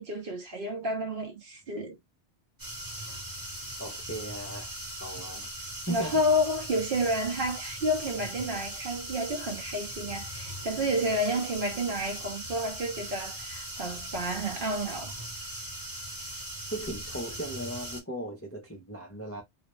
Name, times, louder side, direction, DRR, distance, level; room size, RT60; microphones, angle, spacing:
voice 1, 0.0-2.0 5.9-15.1, equal, 55° right, 0.7 m, -30 dB
sound 1, 2.6-18.0, right 1 dB, 20° right, 0.8 m, -39 dB
voice 2, 3.8-4.8 5.0-5.5 5.9-6.1 16.7-19.4, right 1 dB, 20° left, 0.4 m, -37 dB
2.5 x 2.0 x 3.0 m
omnidirectional pair, 1.2 m